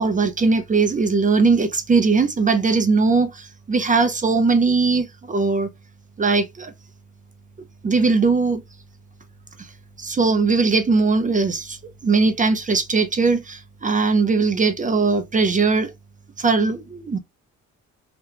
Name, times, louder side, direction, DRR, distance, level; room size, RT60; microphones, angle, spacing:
voice 1, 0.0-5.7 6.2-6.7 7.8-8.6 10.0-15.9 16.4-17.2, right 4 dB, 25° right, 0.6 m, -20 dB
2.9 x 2.2 x 3.3 m
cardioid pair, 90°, 30 cm